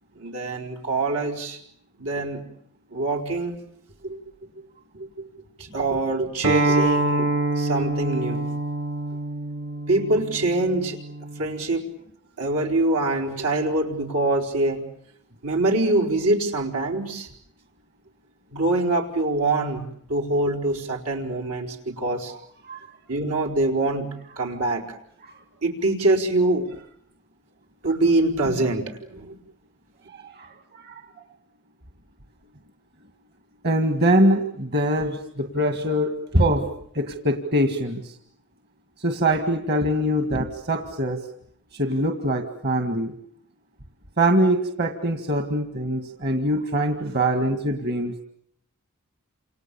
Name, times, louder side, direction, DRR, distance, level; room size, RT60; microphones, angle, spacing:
voice 1, 0.2-1.6 2.0-2.4 2.9-3.6 4.0-4.2 4.9-5.1 5.6-7.3 7.6-8.4 9.9-11.0 11.4-11.9 12.4-14.8 15.4-17.3 18.5-22.3 23.1-24.8 25.6-26.7 27.8-28.8 29.1-29.4, right 2 dB, 90° right, 2 dB, 4.7 m, -24 dB
Acoustic guitar, 6.4-11.6, right 2 dB, 70° right, 2.0 m, -25 dB
voice 2, 30.1-31.0 33.6-36.7 36.9-38.2 39.0-41.3 41.7-43.1 44.2-48.2, right 1 dB, 50° right, 6 dB, 2.0 m, -23 dB
28.5 x 28.0 x 7.1 m, 0.66 s
head